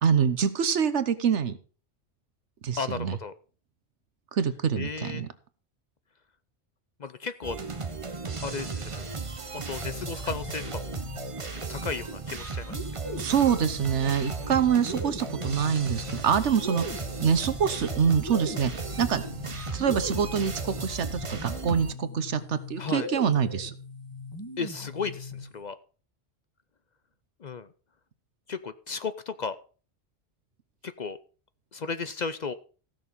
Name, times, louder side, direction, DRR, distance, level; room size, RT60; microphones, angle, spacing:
voice 1, 0.0-1.6 2.6-3.1 4.3-5.3 13.2-16.8 17.2-18.7 19.0-19.2 19.7-23.7, right 7 dB, 85° right, 13 dB, 1.3 m, -25 dB
voice 2, 2.8-3.3 4.8-5.3 7.0-7.6 8.4-9.1 9.5-11.0 11.5-12.8 14.4-14.6 22.8-23.1 24.6-25.8 27.4-27.7 28.5-29.6 30.8-31.2 31.7-32.5, left 5 dB, 50° left, 13 dB, 0.6 m, -34 dB
sound 1, 7.4-21.9, right 4 dB, 30° right, 0.8 m, -36 dB
sound 2, 9.6-11.7 12.7-25.6, left 2 dB, 15° left, 3.6 m, -40 dB
15.0 x 6.5 x 5.4 m, 0.39 s
omnidirectional pair, 1.2 m